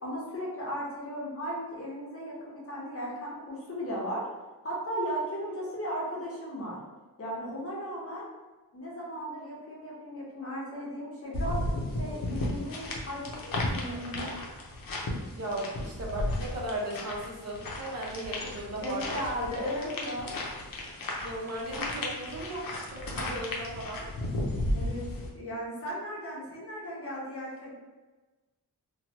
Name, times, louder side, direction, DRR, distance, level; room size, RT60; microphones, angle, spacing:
voice 1, 0.0-4.2 4.6-6.8 7.2-8.3 8.7-14.3 18.8-20.3 24.7-27.7, equal, 35° left, -5 dB, 0.9 m, -36 dB
sound 1, 11.3-25.3, left 1 dB, 65° left, 0.7 m, -34 dB
voice 2, 15.3-19.2 21.2-24.1, right 1 dB, 45° right, -4 dB, 0.8 m, -36 dB
3.0 x 2.3 x 2.8 m, 1.2 s
wide cardioid pair, 110°, 37 cm